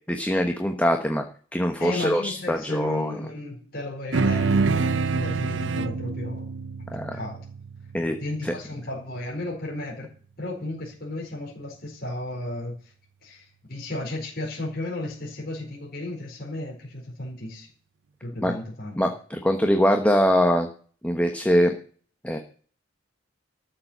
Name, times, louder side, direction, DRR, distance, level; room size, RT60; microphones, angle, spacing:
voice 1, 0.1-1.2 1.5-3.2 6.9-7.2 7.9-8.2 8.4-8.5 18.4-18.5 18.9-20.7 21.0-21.7 22.2-22.4, equal, 5° left, 4 dB, 1.2 m, -23 dB
voice 2, 1.8-6.5 7.1-7.4 8.2-10.1 10.4-12.8 13.2-17.7 18.2-18.9, left 2 dB, 50° left, -2 dB, 4.5 m, -34 dB
sound 1, 4.1-8.9, right 4 dB, 65° right, 0.7 m, -27 dB
13.5 x 7.4 x 8.0 m, 0.43 s
head